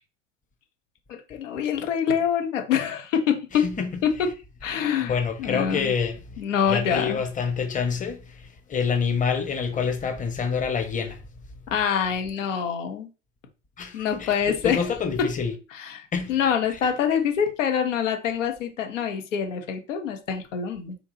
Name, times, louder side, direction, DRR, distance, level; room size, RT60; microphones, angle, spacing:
voice 1, 1.1-3.7 4.0-4.1 4.6-5.9 6.4-7.2 11.7-13.1 13.9-14.9 15.7-21.0, left 8 dB, 75° left, 1.2 m, -25 dB
voice 2, 5.1-6.2 6.7-8.2 8.7-11.2 13.8-15.5 16.1-16.3, left 6 dB, 20° left, 1.0 m, -27 dB
4.5 x 2.9 x 4.0 m
hypercardioid pair, 80°, 38 cm